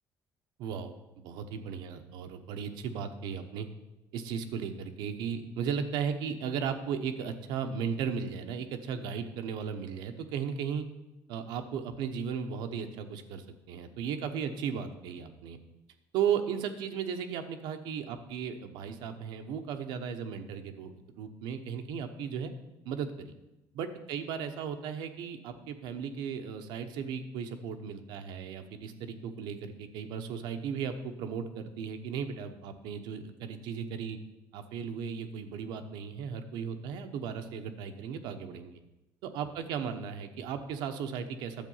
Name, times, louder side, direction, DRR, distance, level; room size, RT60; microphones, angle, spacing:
voice 1, 0.6-0.9 1.2-3.7 4.1-10.9 11.3-15.6 16.1-22.5 22.8-23.3 23.7-34.2 34.5-38.8 39.2-41.7, right 7 dB, 85° right, 7 dB, 1.0 m, -36 dB
10.5 x 7.5 x 5.6 m, 0.97 s
cardioid pair, 120°, 7 cm